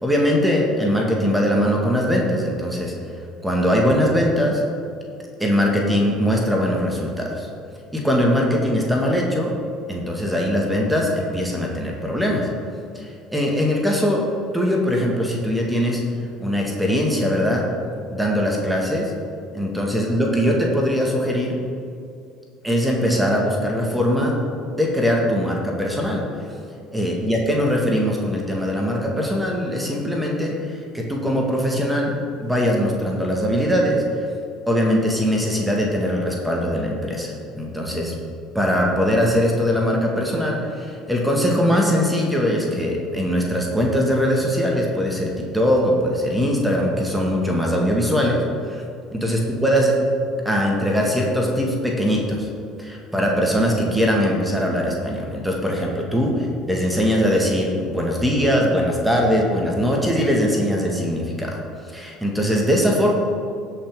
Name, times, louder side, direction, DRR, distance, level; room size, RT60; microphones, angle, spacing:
voice 1, 0.0-2.9 3.4-4.6 5.4-7.5 7.9-9.5 9.9-12.5 13.0-14.3 14.5-16.0 16.4-17.7 18.1-19.1 19.5-21.6 22.6-24.4 24.8-26.2 26.9-32.1 32.4-34.0 34.7-38.1 38.5-48.8 49.1-50.0 50.5-52.5 52.8-61.6 61.9-63.1, equal, 5° right, -1 dB, 1.9 m, -21 dB
17.5 x 5.9 x 3.8 m, 2.4 s
figure-of-eight pair, 60°, 0 cm